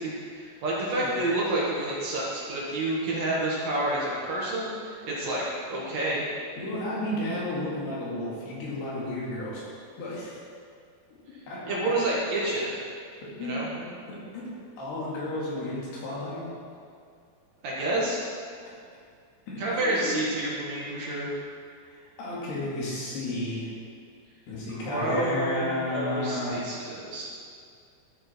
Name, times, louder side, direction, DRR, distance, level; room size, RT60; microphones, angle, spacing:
voice 1, 0.0-5.4 5.7-6.3 11.7-12.7 13.4-13.7 17.6-18.2 19.6-21.3 24.8-27.2, right 1 dB, 55° right, -5 dB, 2.1 m, -29 dB
voice 2, 6.6-10.4 11.5-11.6 13.2-13.8 14.1-14.5 14.8-16.4 19.5-20.1 21.9-23.7 24.5-26.6, left 1 dB, 70° left, -6 dB, 4.2 m, -33 dB
12.5 x 6.6 x 4.4 m, 2.3 s
omnidirectional pair, 4.9 m